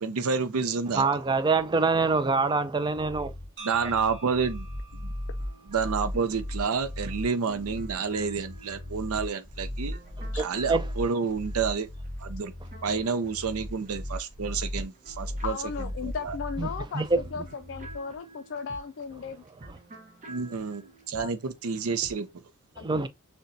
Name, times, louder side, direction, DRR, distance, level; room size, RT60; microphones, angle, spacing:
voice 1, 0.0-1.1 3.6-4.7 4.9-5.1 5.7-10.0 10.4-11.9 12.2-12.5 12.8-15.6 16.0-16.4 20.3-22.3, right 5 dB, 75° right, 0.5 m, -29 dB
voice 2, 1.0-3.3 10.4-10.8 16.6-16.7 16.9-17.2 22.8-23.1, right 4 dB, 20° right, 0.4 m, -25 dB
sound 1, 3.0-18.0, left 1 dB, 5° left, 0.8 m, -37 dB
sound 2, 3.6-7.6, right 4 dB, 60° right, 1.2 m, -49 dB
sound 3, 5.4-14.2 14.5-22.3, right 2 dB, 35° right, 0.9 m, -50 dB
voice 3, 15.4-17.0 17.3-19.4 21.2-21.3 22.8-23.0, left 5 dB, 55° left, 0.4 m, -36 dB
6.5 x 2.2 x 2.6 m
head